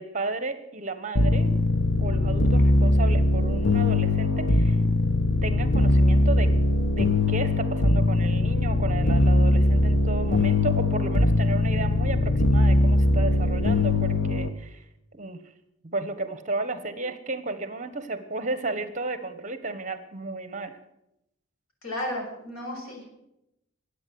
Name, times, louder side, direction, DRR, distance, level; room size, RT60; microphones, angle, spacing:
voice 1, 0.0-1.5 2.0-4.8 5.4-6.5 7.0-14.8 15.1-15.4 15.8-20.8, right 2 dB, 35° right, 11 dB, 1.2 m, -33 dB
sound 1, 1.2-14.5, left 2 dB, 60° left, 1.0 m, -21 dB
voice 2, 21.8-23.0, left 1 dB, 85° left, 0 dB, 6.4 m, -33 dB
21.5 x 8.5 x 7.8 m, 0.84 s
head